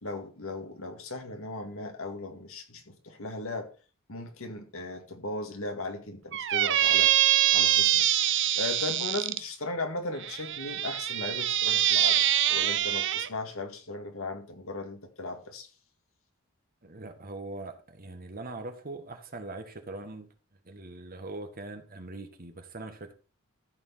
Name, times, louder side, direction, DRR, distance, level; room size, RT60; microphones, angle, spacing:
voice 1, 0.0-3.7 4.1-7.1 7.5-8.0 8.6-15.7, left 2 dB, 75° left, 2.0 m, -37 dB
Squeak, 6.3-9.4 10.2-13.3, right 12 dB, 60° right, 0.7 m, -24 dB
voice 2, 16.8-20.3 20.6-23.1, right 2 dB, 45° right, 1.6 m, -41 dB
14.0 x 4.7 x 5.7 m
head